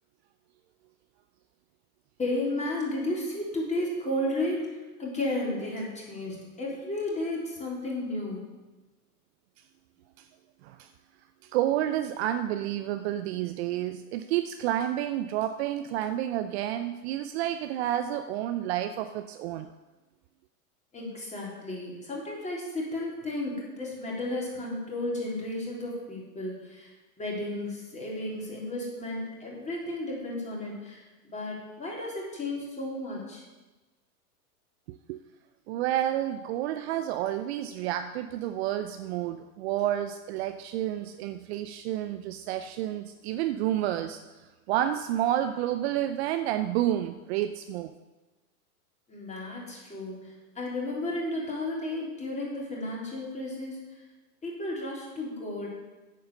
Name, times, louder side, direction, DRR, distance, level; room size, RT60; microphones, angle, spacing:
voice 1, 2.2-8.4 20.9-33.4 49.1-54.0 54.4-55.7, left 1 dB, 15° left, -3 dB, 3.6 m, -33 dB
voice 2, 11.4-19.7 34.9-35.2 35.7-44.2 44.7-47.9, right 12 dB, 45° right, 9 dB, 0.6 m, -30 dB
9.2 x 7.8 x 6.7 m, 1.2 s
hypercardioid pair, 115°, 46 cm